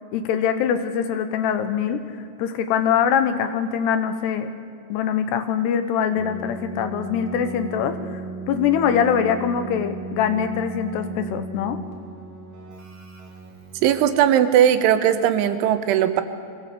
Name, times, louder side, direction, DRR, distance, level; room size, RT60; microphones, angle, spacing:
voice 1, 0.1-4.5 4.9-8.2 8.5-11.8, left 8 dB, 75° left, 9 dB, 2.7 m, -23 dB
Keyboard (musical), 6.1-14.2, right 4 dB, 55° right, 4.2 m, -36 dB
voice 2, 13.8-16.2, right 10 dB, 90° right, 10 dB, 3.5 m, -18 dB
22.0 x 16.5 x 8.3 m, 2.5 s
omnidirectional pair, 5.4 m